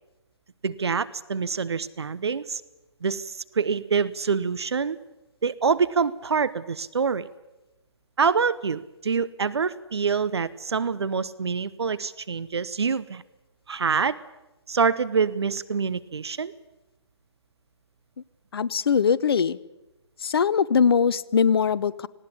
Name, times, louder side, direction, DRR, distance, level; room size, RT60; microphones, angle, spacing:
voice 1, 0.6-2.6 3.0-5.0 5.4-7.3 8.2-13.2 13.7-14.2 14.7-16.5, right 5 dB, 65° right, 17 dB, 0.9 m, -26 dB
voice 2, 18.5-19.6 20.2-22.1, left 6 dB, 60° left, 19 dB, 0.8 m, -21 dB
19.0 x 17.5 x 8.5 m, 0.99 s
figure-of-eight pair, 135°, 14 cm